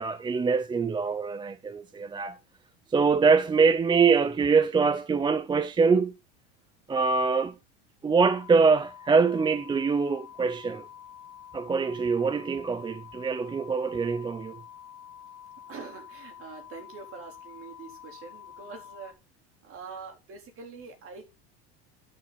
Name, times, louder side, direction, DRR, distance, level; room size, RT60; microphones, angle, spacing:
voice 1, 0.0-2.4 2.9-6.2 6.9-7.6 8.0-10.9 11.5-14.6, right 5 dB, 15° right, 0.5 m, -24 dB
sound 1, 8.3-19.1, left 9 dB, 65° left, 1.9 m, -48 dB
voice 2, 15.7-19.1 19.6-21.3, right 5 dB, 45° right, 3.9 m, -44 dB
11.5 x 7.3 x 4.1 m
supercardioid pair, 105°, 32 cm